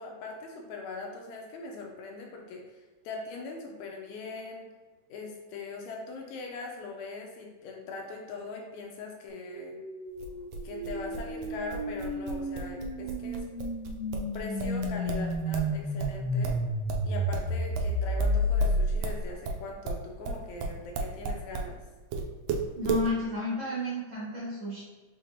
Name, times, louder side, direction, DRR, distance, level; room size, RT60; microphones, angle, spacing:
voice 1, 0.0-4.7 5.1-9.8 10.6-13.4 14.3-16.6 17.0-21.8, left 3 dB, 80° left, 1 dB, 1.9 m, -41 dB
sound 1, 9.3-19.3, equal, 35° right, 1.3 m, -31 dB
sound 2, 10.2-15.7 16.0-21.7 22.1-23.1, right 4 dB, 90° right, 1.4 m, -34 dB
voice 2, 22.7-24.8, left 2 dB, 60° right, -9 dB, 1.3 m, -31 dB
5.2 x 3.4 x 2.7 m, 1.3 s
omnidirectional pair, 3.4 m